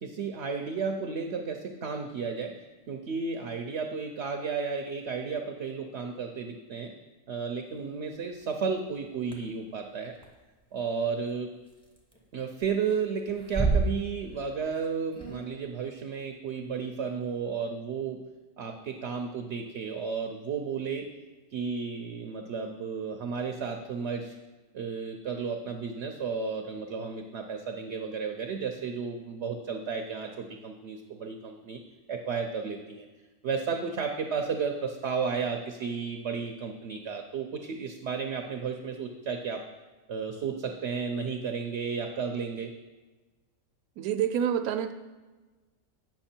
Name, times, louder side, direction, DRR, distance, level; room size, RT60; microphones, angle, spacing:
voice 1, 0.0-2.5 2.9-6.9 7.3-10.2 10.7-11.5 12.3-18.2 18.6-21.0 21.5-24.3 24.7-31.8 32.1-33.1 33.4-39.6 40.1-42.7, right 5 dB, 60° right, 5 dB, 0.8 m, -33 dB
sound 1, 8.4-8.5 9.3-9.4 10.1-10.3 11.8-12.2 12.5-13.0 13.3-14.5 14.8-14.9 15.1-15.4, right 3 dB, 5° left, 0.9 m, -29 dB
voice 2, 44.0-44.9, right 9 dB, 80° right, 7 dB, 1.1 m, -27 dB
8.8 x 5.9 x 4.4 m, 1.2 s
omnidirectional pair, 1.5 m